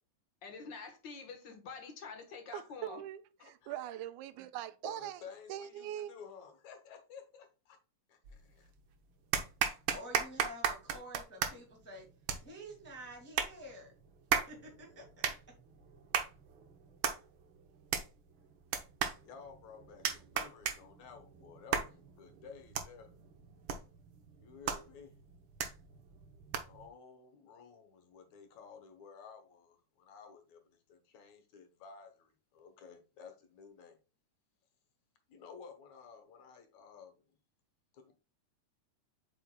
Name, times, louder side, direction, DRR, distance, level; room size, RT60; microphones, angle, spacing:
voice 1, 0.4-3.0 3.4-3.5, left 5 dB, 55° left, 1.4 m, -47 dB
voice 2, 2.5-5.2 5.5-6.1, right 12 dB, 90° right, 2.1 m, -42 dB
voice 3, 4.8-7.8 8.1-8.7 19.2-23.1 24.4-25.2 26.7-30.6 30.9-34.0 35.3-37.2 37.9-38.1, left 6 dB, 70° left, 2.5 m, -53 dB
sound 1, 8.3-8.8 9.3-26.9, right 7 dB, 70° right, 1.2 m, -37 dB
voice 4, 9.7-12.1 12.4-13.9 14.3-15.3, right 1 dB, 5° left, 1.4 m, -49 dB
8.4 x 5.8 x 2.2 m
omnidirectional pair, 3.5 m